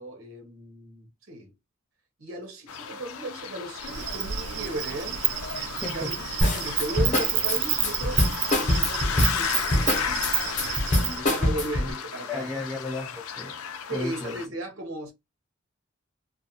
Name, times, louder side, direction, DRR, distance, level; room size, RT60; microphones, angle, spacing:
voice 1, 0.0-1.5 2.2-5.2 5.9-6.1 6.4-10.3 11.0-12.5 13.9-15.1, right 2 dB, 70° right, 0.8 m, -36 dB
sound 1, 2.7-14.5, left 7 dB, 80° left, 0.4 m, -35 dB
Insect, 3.8-11.2, right 11 dB, 90° right, 0.3 m, -30 dB
voice 2, 5.8-6.1 11.8-11.9 12.3-13.6 13.9-14.4, left 2 dB, 5° left, 0.4 m, -33 dB
sound 2, 6.4-11.9, left 1 dB, 35° left, 0.7 m, -24 dB
2.4 x 2.2 x 2.7 m
head